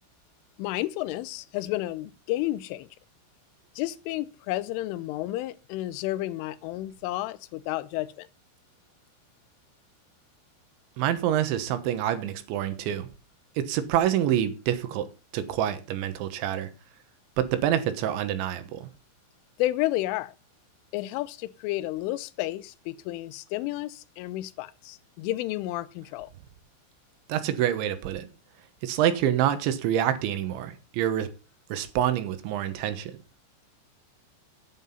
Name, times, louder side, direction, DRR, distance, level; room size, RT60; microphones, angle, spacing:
voice 1, 0.6-2.9 3.8-8.3 19.6-20.3 20.9-26.3, left 16 dB, 85° left, 3.2 m, -31 dB
voice 2, 11.0-13.1 13.6-15.1 15.3-16.7 17.4-18.9 27.3-28.3 28.8-31.3 31.7-33.1, right 11 dB, 75° right, 3.4 m, -27 dB
9.6 x 9.5 x 5.6 m
omnidirectional pair, 5.5 m